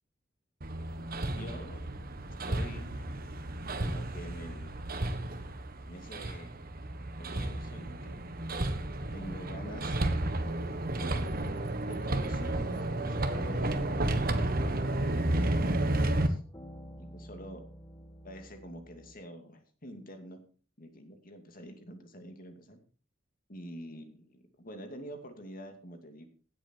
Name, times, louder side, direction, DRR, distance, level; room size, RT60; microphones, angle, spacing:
Hammer, 0.6-16.3, right 1 dB, 50° right, 1.5 m, -32 dB
voice 1, 1.3-1.8 2.5-3.1 3.8-4.7 5.9-6.5 7.2-8.2 9.1-10.0 10.9-11.5 11.9-14.8 15.3-16.4 17.0-17.6 18.2-20.4 20.8-22.8 23.5-26.3, equal, 45° left, 6 dB, 2.5 m, -46 dB
sound 1, 10.8-19.1, equal, 20° left, 2.0 m, -50 dB
16.5 x 8.1 x 4.5 m, 0.38 s
head